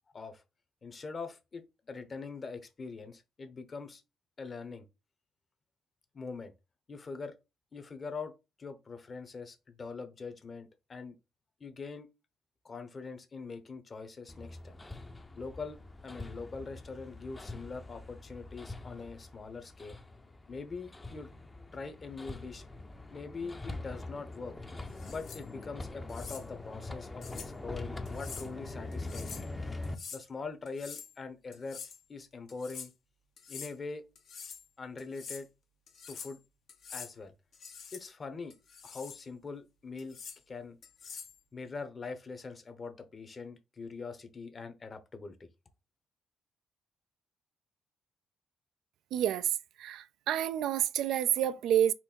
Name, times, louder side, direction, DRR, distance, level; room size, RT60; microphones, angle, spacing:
voice 1, 0.8-4.0 4.4-4.9 6.1-6.5 6.9-7.3 7.7-8.3 8.6-11.2 11.6-12.1 12.6-14.8 15.4-20.0 20.5-21.3 21.7-22.6 23.1-24.6 25.1-29.5 30.1-31.8 32.1-32.9 33.5-34.1 34.4-34.5 34.8-35.5 36.1-36.4 36.9-37.3 37.9-38.5 38.8-40.2 40.5-40.8 41.5-45.5, left 4 dB, 35° left, 1.0 m, -43 dB
Hammer, 14.3-30.0, left 2 dB, 20° left, 0.7 m, -43 dB
sound 1, 24.9-25.4 26.1-26.4 27.2-27.5 28.1-28.5 28.9-29.5 29.8-30.2 30.7-31.1 31.5-32.0 32.5-32.9 33.4-33.7 34.2-34.6 35.0-35.4 35.9-36.4 36.7-37.1 37.5-38.0 38.5-39.2 40.0-40.4 40.8-41.4, left 6 dB, 65° left, 1.0 m, -46 dB
voice 2, 49.1-51.9, right 11 dB, 80° right, 0.3 m, -29 dB
4.4 x 2.7 x 4.4 m
cardioid pair, 90°, 0 cm